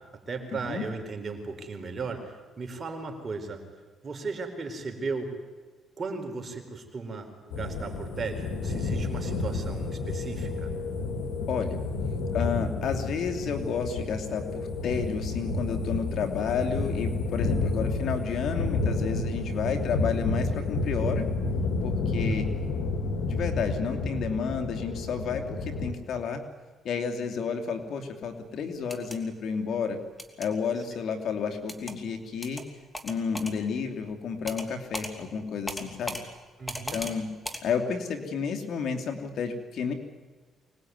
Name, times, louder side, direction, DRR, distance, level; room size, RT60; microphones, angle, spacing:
voice 1, 0.3-3.6 4.0-5.4 6.0-10.7 22.2-22.6 30.8-31.0 36.6-37.1, right 4 dB, 40° right, 4 dB, 4.5 m, -36 dB
sound 1, 7.5-25.9, left 3 dB, 85° left, 2.7 m, -30 dB
voice 2, 11.5-11.8 12.3-21.3 21.8-22.5 23.2-26.4 26.8-30.0 30.4-32.6 33.0-36.2 36.9-37.3 37.6-39.9, left 6 dB, 65° left, 4 dB, 2.9 m, -31 dB
sound 2, 28.8-29.2 30.2-30.5 31.7-32.0 32.4-32.6 32.9-33.5 34.5-34.7 34.9-35.1 35.7-36.2 36.7-37.1 37.4-37.6, equal, 10° left, 2.9 m, -36 dB
25.0 x 19.5 x 9.6 m, 1.4 s
cardioid pair, 90°, 0 cm